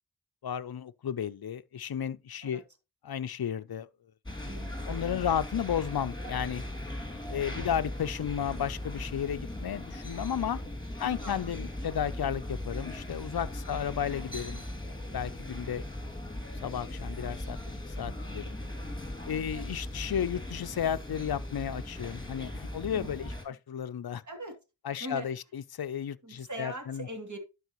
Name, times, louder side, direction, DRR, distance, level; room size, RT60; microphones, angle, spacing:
voice 1, 0.4-2.6 3.0-3.9 4.9-6.6 7.3-10.6 11.0-14.7 15.1-16.1 16.6-18.6 19.3-24.2 24.8-27.1, left 9 dB, 60° left, 0.6 m, -33 dB
sound 1, 4.3-23.4, left 1 dB, 10° left, 2.5 m, -38 dB
voice 2, 4.4-5.0 7.5-7.7 11.0-11.4 19.5-19.7 22.9-23.3 24.2-24.6 25.0-25.3 26.2-27.4, right 2 dB, 45° right, 2.8 m, -42 dB
12.0 x 4.9 x 3.1 m
wide cardioid pair, 50°, 42 cm